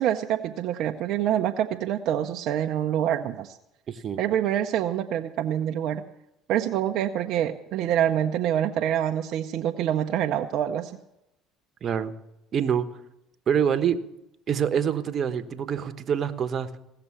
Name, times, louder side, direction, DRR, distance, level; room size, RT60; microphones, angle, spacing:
voice 1, 0.0-3.6 4.2-6.1 6.5-10.9, right 10 dB, 65° right, 4 dB, 0.7 m, -26 dB
voice 2, 3.9-4.2 11.8-12.1 12.5-12.9 13.5-14.0 14.5-16.8, right 8 dB, 45° right, 10 dB, 1.1 m, -25 dB
17.0 x 6.8 x 9.7 m, 0.87 s
hypercardioid pair, 75°, 0 cm